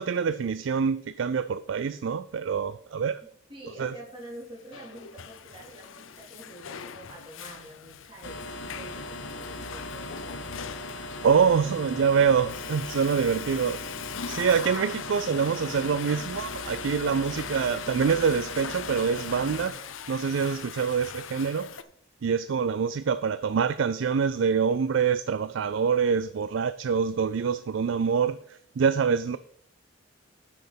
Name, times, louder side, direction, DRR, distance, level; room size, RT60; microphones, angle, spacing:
voice 1, 0.0-3.2 3.8-3.9 11.0-13.8 14.3-21.7 22.2-29.4, right 6 dB, 75° right, 0.4 m, -25 dB
voice 2, 3.2-8.5 8.7-10.4, right 1 dB, 25° right, 3.8 m, -46 dB
Water / Toilet flush, 4.3-21.8, left 8 dB, 90° left, 0.6 m, -41 dB
sound 1, 8.2-19.7, left 2 dB, 70° left, 1.2 m, -38 dB
10.5 x 6.5 x 5.2 m
head